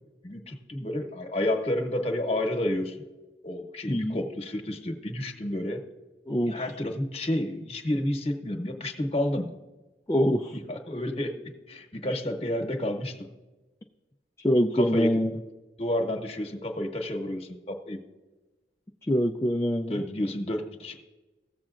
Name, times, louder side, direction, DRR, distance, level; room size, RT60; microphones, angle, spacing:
voice 1, 0.2-3.0 3.4-5.8 6.4-9.5 10.5-13.2 14.7-15.2 15.8-18.0 19.9-21.0, left 1 dB, 35° left, 5 dB, 1.1 m, -30 dB
voice 2, 3.9-4.2 6.3-6.6 10.1-10.6 12.1-12.2 14.4-15.3 19.1-20.0, equal, 15° left, 1 dB, 0.4 m, -24 dB
16.0 x 7.3 x 2.5 m, 1.2 s
head